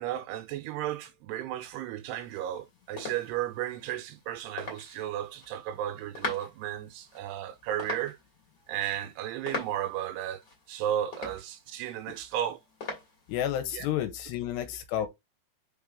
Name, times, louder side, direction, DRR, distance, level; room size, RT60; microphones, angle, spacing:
voice 1, 0.0-8.2 8.7-10.4 10.7-12.6 13.7-13.9, right 11 dB, 85° right, 2.7 m, -34 dB
sound 1, 2.2-13.5, left 3 dB, 30° left, 2.5 m, -43 dB
voice 2, 13.3-15.1, left 11 dB, 85° left, 3.1 m, -31 dB
5.4 x 5.4 x 3.6 m
omnidirectional pair, 4.8 m